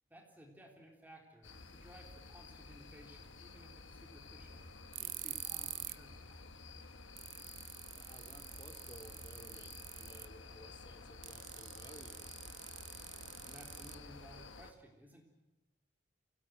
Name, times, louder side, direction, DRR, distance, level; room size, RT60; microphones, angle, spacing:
voice 1, 0.1-6.4 13.4-15.2, equal, 10° right, 1 dB, 3.6 m, -58 dB
sound 1, 1.4-14.7, left 3 dB, 85° left, 1.5 m, -53 dB
sound 2, 4.9-6.0 6.4-6.5 6.9-7.0 7.2-10.4 11.2-14.4, right 15 dB, 80° right, 1.1 m, -46 dB
voice 2, 8.0-12.3, left 1 dB, 25° left, 5 dB, 2.2 m, -57 dB
25.0 x 17.5 x 9.5 m, 1.1 s
head